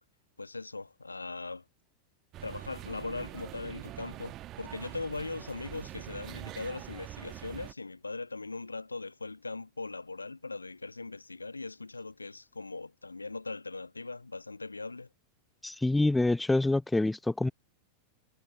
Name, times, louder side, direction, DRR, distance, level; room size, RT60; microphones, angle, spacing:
voice 1, 0.4-1.6 2.4-15.1, left 3 dB, 80° left, 1.3 m, -40 dB
sound 1, 2.3-7.7, right 14 dB, 35° right, 1.2 m, -44 dB
voice 2, 15.6-17.5, left 2 dB, 5° left, 0.8 m, -26 dB
figure-of-eight pair, 90°, 0 cm